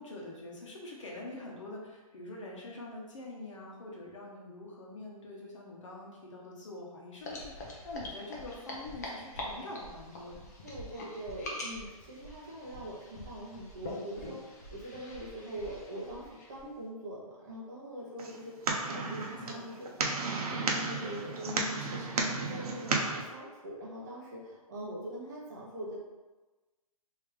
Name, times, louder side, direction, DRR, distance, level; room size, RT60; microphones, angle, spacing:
voice 1, 0.0-10.4 19.1-19.7 21.4-22.3, left 2 dB, 55° left, -2 dB, 0.9 m, -45 dB
sound 1, 7.2-16.7, left 1 dB, 25° left, 0.5 m, -44 dB
voice 2, 10.6-19.9 20.2-21.5 21.9-22.0 22.4-26.1, right 1 dB, 30° right, -5 dB, 0.7 m, -43 dB
sound 2, 18.2-23.2, right 3 dB, 85° right, 0.7 m, -33 dB
3.3 x 2.8 x 3.2 m, 1.2 s
hypercardioid pair, 175°, 19 cm